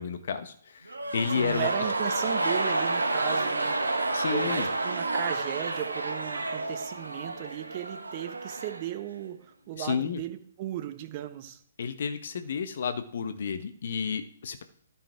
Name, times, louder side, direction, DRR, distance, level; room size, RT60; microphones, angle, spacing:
voice 1, 0.0-1.7 4.1-4.7 9.8-10.2 11.8-14.6, left 6 dB, 55° left, 9 dB, 1.3 m, -31 dB
sound 1, 0.9-9.0 9.2-9.3, right 2 dB, 85° right, 1.3 m, -30 dB
voice 2, 1.3-4.0 4.3-11.6, right 13 dB, 35° right, 9 dB, 1.1 m, -36 dB
13.0 x 5.6 x 4.6 m, 0.66 s
figure-of-eight pair, 130°, 0 cm